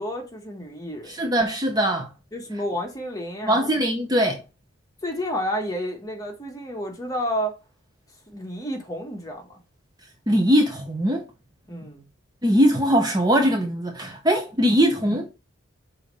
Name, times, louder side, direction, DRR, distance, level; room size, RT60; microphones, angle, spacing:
voice 1, 0.0-1.1 2.3-3.8 5.0-7.6 8.3-9.6 11.7-12.1, equal, 15° left, 1.5 m, -30 dB
voice 2, 1.1-2.1 3.4-4.4 10.3-11.2 12.4-15.3, equal, 20° right, 0.7 m, -21 dB
5.6 x 4.2 x 5.3 m
head